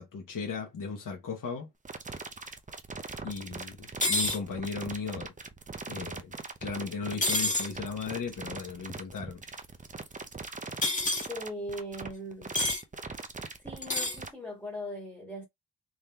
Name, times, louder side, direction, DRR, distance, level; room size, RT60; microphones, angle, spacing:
voice 1, 0.0-1.7 3.2-5.3 5.9-6.4 6.6-9.4, left 5 dB, 55° left, 1.1 m, -36 dB
sound 1, 1.8-14.3, right 4 dB, 20° right, 0.5 m, -41 dB
sound 2, 4.0-4.4 7.2-7.7 10.8-11.3 12.6-12.8 13.8-14.2, left 1 dB, 20° left, 1.3 m, -27 dB
voice 2, 11.3-12.5 13.6-15.5, equal, 5° left, 1.5 m, -39 dB
3.7 x 2.8 x 3.4 m
wide cardioid pair, 125°, 39 cm